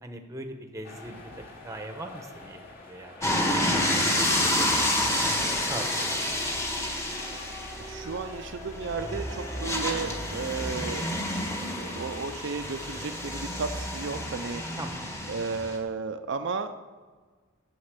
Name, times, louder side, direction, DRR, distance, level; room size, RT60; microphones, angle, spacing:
voice 1, 0.0-2.6 2.8-6.5 14.8-15.2, right 1 dB, 15° right, 5 dB, 0.9 m, -41 dB
sound 1, 0.8-12.1, left 1 dB, 45° left, 2.6 m, -45 dB
sound 2, 3.2-15.8, left 1 dB, 15° left, 1.4 m, -29 dB
voice 2, 7.8-11.1 11.8-14.6 15.3-16.8, right 4 dB, 60° right, 7 dB, 0.5 m, -34 dB
9.6 x 7.1 x 8.2 m, 1.4 s
head